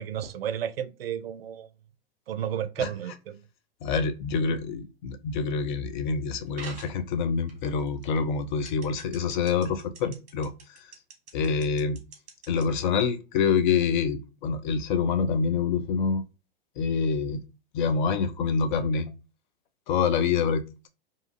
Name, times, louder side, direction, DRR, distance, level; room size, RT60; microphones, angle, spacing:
voice 1, 0.0-1.7 2.3-3.4, right 9 dB, 75° right, 0.4 m, -32 dB
voice 2, 3.8-10.9 11.3-12.0 12.5-16.2 16.8-17.4 17.7-19.1 19.9-20.9, left 5 dB, 50° left, 0.5 m, -26 dB
sound 1, 6.6-7.0 7.5-8.1 8.7-12.8, right 4 dB, 25° right, 1.1 m, -44 dB
2.7 x 2.4 x 2.5 m
figure-of-eight pair, 105°, 30 cm